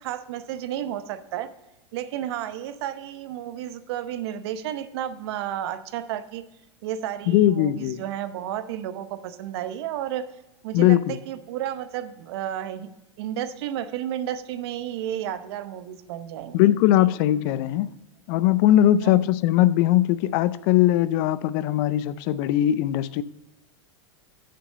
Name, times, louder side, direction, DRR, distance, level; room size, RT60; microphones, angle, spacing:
voice 1, 0.0-1.5 1.9-6.4 6.8-10.3 10.6-12.9 13.2-16.7 17.0-17.1 19.0-19.3, right 11 dB, 65° right, 12 dB, 0.8 m, -32 dB
voice 2, 7.3-8.0 10.7-11.1 16.5-17.9 18.3-23.2, left 13 dB, 55° left, 17 dB, 0.5 m, -20 dB
7.0 x 6.0 x 6.8 m, 0.95 s
hypercardioid pair, 105°, 15 cm